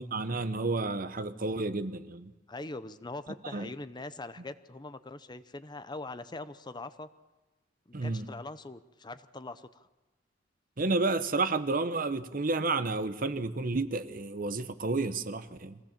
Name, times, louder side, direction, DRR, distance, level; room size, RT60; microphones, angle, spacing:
voice 1, 0.0-2.3 3.5-3.7 7.9-8.3 10.8-15.8, right 3 dB, 45° right, 0.9 m, -31 dB
voice 2, 2.5-7.1 7.9-9.9, left 2 dB, 25° left, 0.7 m, -42 dB
24.0 x 16.5 x 7.4 m
head